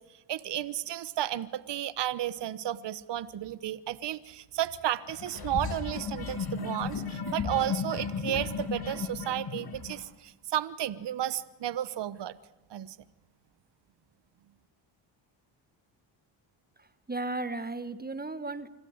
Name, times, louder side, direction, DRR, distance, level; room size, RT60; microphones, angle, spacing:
voice 1, 0.0-12.4 12.7-13.0, right 12 dB, 55° right, 16 dB, 1.1 m, -33 dB
sound 1, 5.1-10.0, left 5 dB, 45° left, 7.4 m, -35 dB
voice 2, 16.8-18.7, right 2 dB, 20° right, 12 dB, 1.5 m, -35 dB
25.5 x 16.0 x 9.6 m, 1.2 s
cardioid pair, 75°, 49 cm